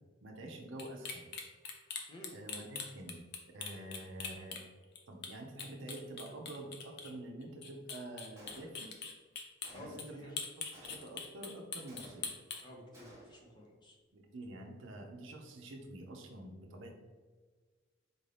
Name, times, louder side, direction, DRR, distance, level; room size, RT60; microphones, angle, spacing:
voice 1, 0.2-1.3 2.3-3.2 3.5-4.6 5.1-8.9 9.7-10.4 10.7-12.3 14.1-16.9, right 1 dB, 75° right, 2 dB, 0.6 m, -47 dB
sound 1, 0.8-5.0 5.2-5.3 5.6-7.1 7.4-9.7 10.0-10.1 10.4-12.6, left 5 dB, 60° left, 0.6 m, -42 dB
Gunshot gunfire, 8.4-9.1 9.6-10.2 10.7-11.3 11.9-12.5 12.9-13.5, right 1 dB, 15° right, 0.9 m, -57 dB
voice 2, 9.7-10.4 12.6-14.0, equal, 25° left, -1 dB, 0.7 m, -51 dB
4.5 x 2.7 x 3.3 m, 1.4 s
head